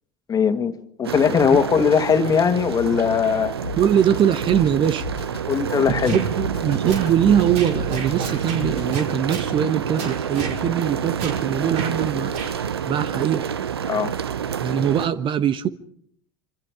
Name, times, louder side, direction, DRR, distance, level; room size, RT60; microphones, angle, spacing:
voice 1, 0.3-0.7 1.0-3.5 5.5-6.2 13.9-14.1, left 7 dB, 30° left, 2.2 m, -19 dB
sound 1, 1.0-15.1, right 8 dB, 80° right, 0.9 m, -28 dB
Drum kit, 3.6-9.0, left 6 dB, 80° left, 2.1 m, -36 dB
voice 2, 3.8-5.1 6.1-12.3 12.8-13.5 14.6-15.7, right 9 dB, 40° right, 1.3 m, -22 dB
sound 2, 6.0-6.3 6.9-7.1 7.5-8.6 8.9-9.5 10.0-10.6 11.2-11.4 11.7-11.9 12.3-12.5, right 4 dB, 55° right, 5.3 m, -32 dB
26.0 x 26.0 x 5.0 m
figure-of-eight pair, 75°, 13 cm